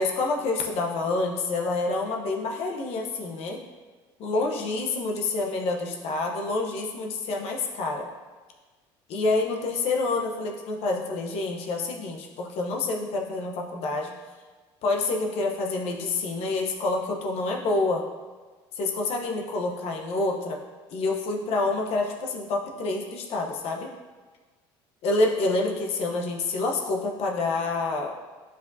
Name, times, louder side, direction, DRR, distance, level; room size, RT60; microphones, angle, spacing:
voice 1, 0.0-3.6 4.2-8.1 9.1-14.1 14.8-18.0 18.8-20.6 20.9-23.9 25.0-28.1, left 3 dB, 65° left, 1 dB, 0.9 m, -27 dB
9.2 x 5.1 x 2.7 m, 1.4 s
supercardioid pair, 105°, 11 cm